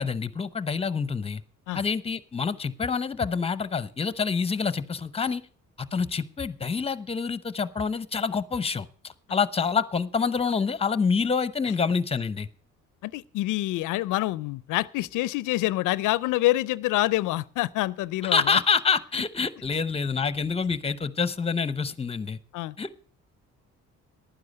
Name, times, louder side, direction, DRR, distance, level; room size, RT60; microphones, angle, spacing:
voice 1, 0.0-1.4 1.7-5.4 5.8-12.5 18.2-22.4 22.8-23.0, left 5 dB, 20° left, 0.8 m, -27 dB
voice 2, 13.0-18.6 22.5-22.8, left 17 dB, 85° left, 0.5 m, -26 dB
11.5 x 9.6 x 6.5 m
cardioid pair, 90°, 30 cm